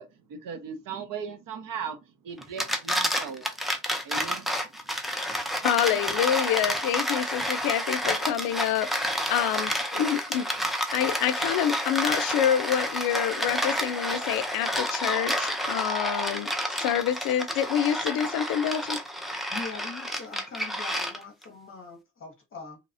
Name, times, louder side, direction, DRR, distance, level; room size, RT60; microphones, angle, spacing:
voice 1, 0.0-2.0 2.2-3.5 4.0-4.5 5.9-6.0, right 6 dB, 65° right, 0.8 m, -37 dB
sound 1, 2.4-21.4, equal, ahead, 0.3 m, -29 dB
voice 2, 5.6-10.5 10.9-19.0, left 10 dB, 85° left, 0.5 m, -27 dB
voice 3, 19.5-22.8, left 4 dB, 35° left, 0.7 m, -42 dB
3.0 x 2.0 x 2.5 m
cardioid pair, 120°, 35 cm